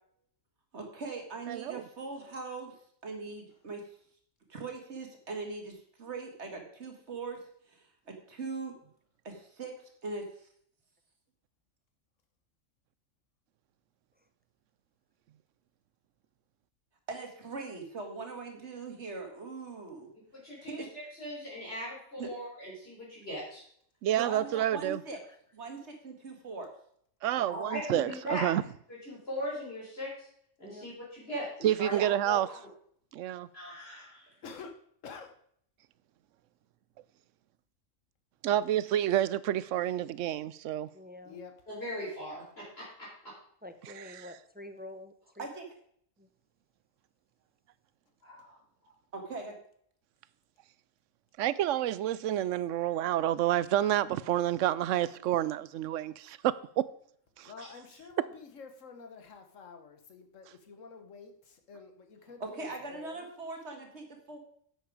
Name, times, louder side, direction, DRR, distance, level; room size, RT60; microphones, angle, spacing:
voice 1, 0.7-2.7 3.0-3.8 4.5-7.4 8.1-8.7 9.2-9.8 10.0-10.3 17.1-20.1 20.6-20.9 22.2-22.3 24.2-25.2 25.5-26.7 31.9-32.1 45.4-45.7 49.1-49.6 62.4-64.4, right 3 dB, 60° right, 2.2 m, -40 dB
voice 2, 1.5-1.8 24.0-25.0 27.2-28.6 31.6-32.5 33.1-33.5 38.4-40.9 44.2-44.3 51.4-56.8 57.4-57.5, right 12 dB, 75° right, 0.9 m, -29 dB
voice 3, 20.3-23.6 27.2-28.5 29.1-30.3 30.6-31.5 31.8-31.9 32.2-32.4 33.5-34.3 41.7-43.3 48.2-48.6, equal, 50° left, 4.0 m, -39 dB
voice 4, 34.4-35.4 41.2-41.5 57.4-63.3, left 5 dB, 75° left, 1.6 m, -49 dB
voice 5, 40.9-41.4 43.6-45.5 46.2-46.3, left 1 dB, 10° right, 0.6 m, -47 dB
10.5 x 7.9 x 4.9 m
omnidirectional pair, 1.3 m